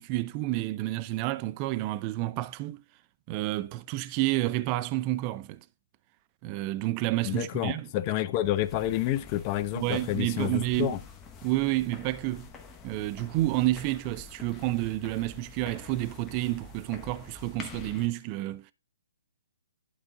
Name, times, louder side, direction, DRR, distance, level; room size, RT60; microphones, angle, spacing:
voice 1, 0.0-2.8 3.3-5.6 6.4-7.9 9.7-11.0 11.4-12.5 12.8-18.7, right 17 dB, 30° right, 0.4 m, -30 dB
voice 2, 7.2-11.0, left 13 dB, 30° left, 0.6 m, -29 dB
sound 1, 8.4-18.1, left 4 dB, 15° left, 1.0 m, -47 dB
11.5 x 4.0 x 3.7 m
hypercardioid pair, 135°, 0 cm